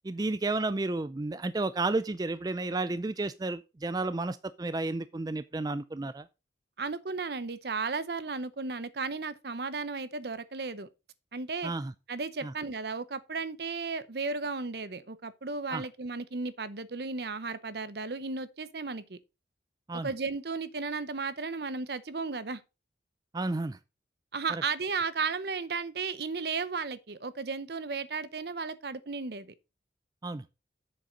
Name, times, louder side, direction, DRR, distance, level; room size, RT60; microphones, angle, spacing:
voice 1, 0.0-6.3 11.6-11.9 12.4-12.5 15.7-15.9 19.9-20.1 23.3-23.8 24.5-24.6 30.2-30.4, right 2 dB, 20° right, 0.4 m, -32 dB
voice 2, 6.8-10.9 11.3-11.7 12.1-19.2 20.0-22.6 24.3-29.5, right 4 dB, 60° right, 0.8 m, -34 dB
7.6 x 6.7 x 5.1 m
head